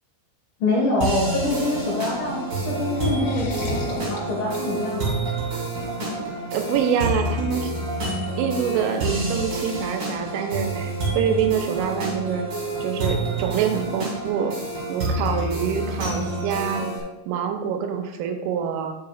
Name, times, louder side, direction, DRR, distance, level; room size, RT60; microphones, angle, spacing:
voice 1, 0.6-5.2, left 2 dB, 65° left, -5 dB, 2.5 m, -25 dB
sound 1, 1.0-17.0, right 2 dB, 40° right, 2.1 m, -28 dB
sound 2, 2.0-6.9, left 2 dB, 85° left, 4.1 m, -36 dB
voice 2, 6.5-7.7 8.4-12.5 12.8-14.5 14.9-16.9 17.3-18.9, right 7 dB, 85° right, 4 dB, 3.2 m, -25 dB
9.7 x 7.4 x 2.4 m, 0.95 s
omnidirectional pair, 5.9 m